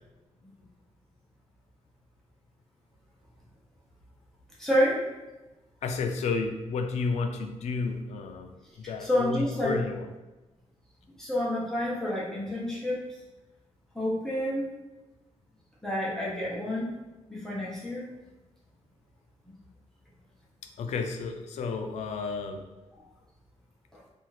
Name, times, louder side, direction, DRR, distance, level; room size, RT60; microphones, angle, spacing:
voice 1, 4.6-5.0 9.0-9.8 11.2-13.1 13.9-14.6 15.8-16.9 17.3-18.0 23.9-24.0, equal, 5° left, -7 dB, 0.7 m, -28 dB
voice 2, 5.8-8.6 8.9-10.1 20.8-22.6, left 4 dB, 70° left, 5 dB, 0.4 m, -31 dB
2.7 x 2.4 x 3.0 m, 1.1 s
cardioid pair, 130°, 12 cm